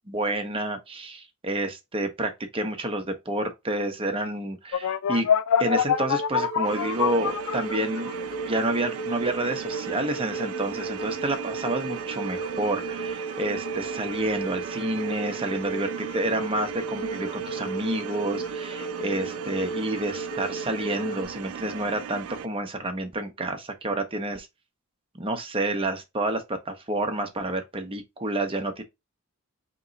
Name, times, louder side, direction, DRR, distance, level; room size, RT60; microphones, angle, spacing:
voice 1, 0.1-5.3 5.6-8.1 8.5-24.5 25.2-28.8, right 1 dB, 25° right, 0.8 m, -29 dB
sound 1, 4.7-8.2, left 8 dB, 90° left, 0.3 m, -25 dB
sound 2, 5.6-21.2, right 3 dB, 25° left, 0.8 m, -35 dB
sound 3, 6.6-22.5, right 8 dB, 75° right, 0.4 m, -37 dB
3.6 x 3.0 x 3.8 m
head